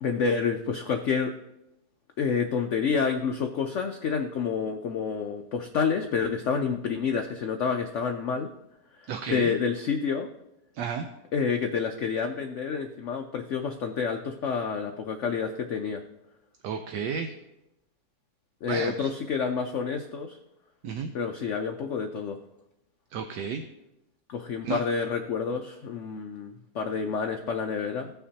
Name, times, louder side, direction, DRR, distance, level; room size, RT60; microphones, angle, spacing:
voice 1, 0.0-1.4 2.2-8.5 9.3-10.3 11.3-16.0 18.6-20.4 21.1-22.4 24.3-28.1, left 6 dB, 85° left, 5 dB, 0.6 m, -28 dB
voice 2, 9.1-9.6 10.7-11.1 16.6-17.3 18.7-19.1 20.8-21.1 23.1-23.6 24.6-24.8, right 6 dB, 75° right, 6 dB, 1.2 m, -32 dB
16.0 x 5.7 x 2.8 m, 0.89 s
omnidirectional pair, 2.0 m